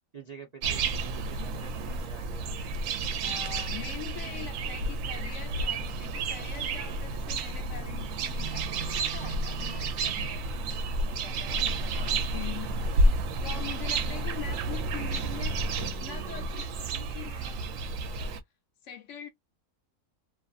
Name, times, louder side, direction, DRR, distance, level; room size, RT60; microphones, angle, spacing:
voice 1, 0.1-2.5 11.9-12.2, right 5 dB, 55° right, 0.4 m, -48 dB
sound 1, 0.6-18.4, right 2 dB, 70° right, 0.9 m, -31 dB
voice 2, 3.1-10.5 11.0-17.6 18.0-18.4 18.8-19.3, left 10 dB, 65° left, 0.9 m, -44 dB
2.6 x 2.4 x 2.3 m
omnidirectional pair, 1.5 m